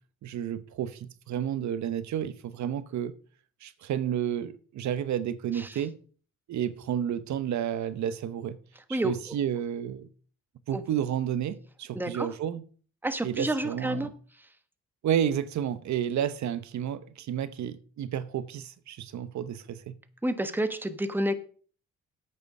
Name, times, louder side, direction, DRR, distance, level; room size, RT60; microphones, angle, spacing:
voice 1, 0.2-3.1 3.6-6.0 6.5-8.6 8.9-10.1 10.7-12.6 13.2-14.1 15.0-20.0, right 9 dB, 65° right, 0.8 m, -31 dB
voice 2, 11.9-12.3 13.0-14.1 20.2-21.3, right 1 dB, 5° right, 1.2 m, -29 dB
8.7 x 6.8 x 6.4 m
cardioid pair, 90°, 30 cm